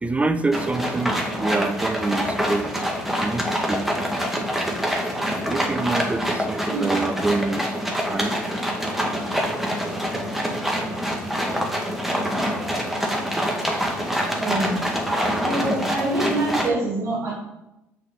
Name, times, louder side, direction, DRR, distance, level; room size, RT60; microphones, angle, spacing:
voice 1, 0.0-2.7 3.2-4.0 5.5-7.6 8.1-8.7, right 3 dB, 20° right, 10 dB, 0.9 m, -26 dB
sound 1, 0.5-16.7, equal, 5° right, 1.7 m, -25 dB
voice 2, 14.4-14.8 15.4-17.3, right 2 dB, 50° right, -5 dB, 2.3 m, -25 dB
6.1 x 5.0 x 5.4 m, 0.92 s
hypercardioid pair, 65°, 7 cm